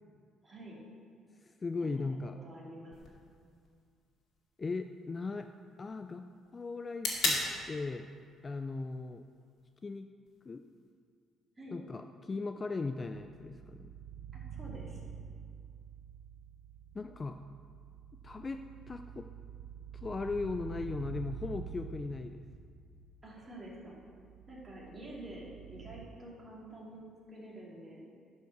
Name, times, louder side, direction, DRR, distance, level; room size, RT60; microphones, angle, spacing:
voice 1, 0.4-0.8 2.4-3.0 11.6-11.8 14.3-15.0 23.2-23.9 24.5-27.0 27.3-28.1, right 1 dB, 20° right, -5 dB, 2.6 m, -48 dB
voice 2, 1.4-2.4 4.6-5.5 5.8-6.3 6.5-7.4 7.7-8.1 8.4-9.2 9.8-10.1 10.5-10.6 11.7-13.9 16.9-17.4 18.2-18.6 18.9-19.3 19.9-22.5, left 3 dB, 25° left, 7 dB, 0.3 m, -38 dB
sound 1, 2.9-10.9, left 3 dB, 55° left, 2.1 m, -41 dB
sound 2, 13.1-26.1, right 8 dB, 90° right, 0.4 m, -48 dB
10.5 x 5.3 x 6.6 m, 2.1 s
cardioid pair, 130°, 0 cm